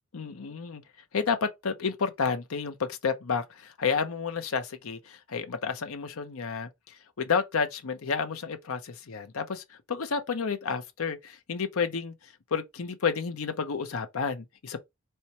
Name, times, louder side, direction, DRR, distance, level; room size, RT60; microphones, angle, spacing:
voice 1, 0.1-0.8 1.1-14.8, left 5 dB, 70° left, 0.6 m, -31 dB
4.4 x 2.1 x 2.7 m
head